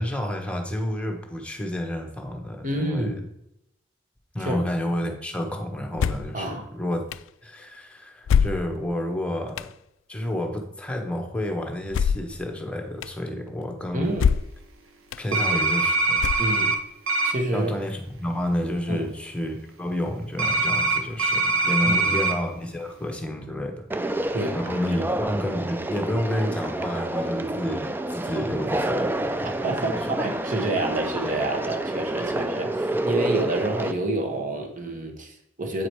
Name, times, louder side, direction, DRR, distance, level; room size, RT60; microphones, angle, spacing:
voice 1, 0.0-3.1 4.3-7.0 7.4-9.7 10.1-14.2 15.2-16.2 17.5-24.2 24.5-29.5 29.9-30.0, left 1 dB, 5° left, 2 dB, 1.1 m, -30 dB
voice 2, 2.6-3.2 4.4-4.6 6.3-6.7 13.9-14.3 15.3-15.6 16.4-16.7 17.2-17.7 18.9-19.1 21.8-22.2 24.3-24.6 24.9-25.0 29.4-35.9, right 2 dB, 40° right, 3 dB, 1.4 m, -28 dB
sound 1, 6.0-6.4 7.1-7.2 8.3-9.0 9.6-9.7 11.9-12.4 13.0-13.1 14.2-14.6 15.1-15.2 16.2-16.8, left 7 dB, 70° left, 0.3 m, -23 dB
sound 2, 15.3-16.8 17.1-17.3 20.4-22.3, right 3 dB, 90° right, 1.0 m, -23 dB
Conversation, 23.9-33.9, right 1 dB, 10° right, 0.4 m, -28 dB
8.4 x 4.9 x 4.6 m, 0.83 s
head